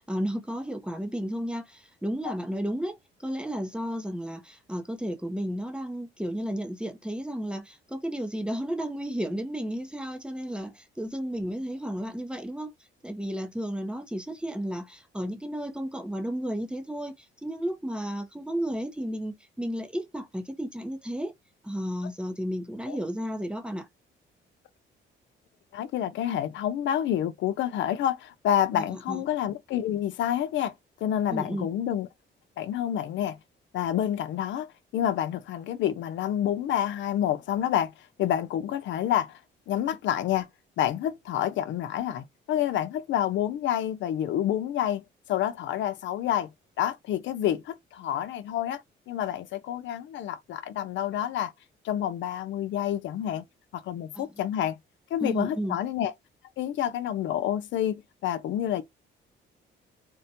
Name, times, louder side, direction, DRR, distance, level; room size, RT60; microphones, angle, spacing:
voice 1, 0.0-12.7 13.0-21.3 21.6-23.9 28.7-29.2 31.3-31.7 54.1-54.3 55.2-55.8, equal, 5° right, 0.5 m, -33 dB
voice 2, 25.7-30.7 31.0-32.1 32.6-33.4 33.7-37.9 38.2-39.4 39.7-40.5 40.8-46.5 46.8-51.5 51.8-53.4 53.7-54.8 55.1-56.1 56.6-58.8, left 11 dB, 70° left, 0.4 m, -28 dB
2.7 x 2.1 x 2.6 m
cardioid pair, 90°, 20 cm